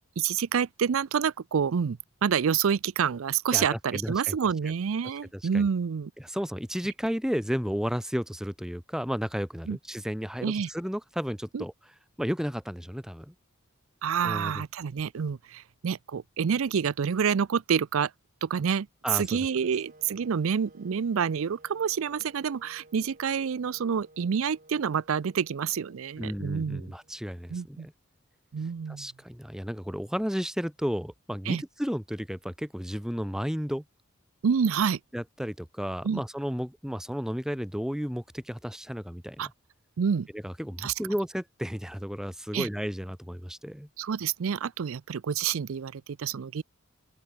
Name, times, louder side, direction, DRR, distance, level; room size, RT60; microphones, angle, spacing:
voice 1, 0.2-6.1 9.7-9.8 10.4-10.7 11.5-11.6 14.0-18.1 18.4-18.9 19.1-26.9 27.5-27.9 28.5-29.1 31.5-31.6 34.4-35.0 36.0-36.2 39.4-39.5 40.0-40.3 40.8-40.9 42.5-42.7 44.0-46.6, right 7 dB, 70° right, 0.4 m, -28 dB
voice 2, 3.5-4.3 5.3-5.7 6.2-11.7 12.2-13.3 14.2-14.5 19.0-19.5 26.2-27.9 28.9-33.8 35.1-39.5 40.3-43.9, equal, 5° right, 1.3 m, -33 dB
sound 1, 19.2-27.3, right 2 dB, 40° right, 7.7 m, -56 dB
open air
head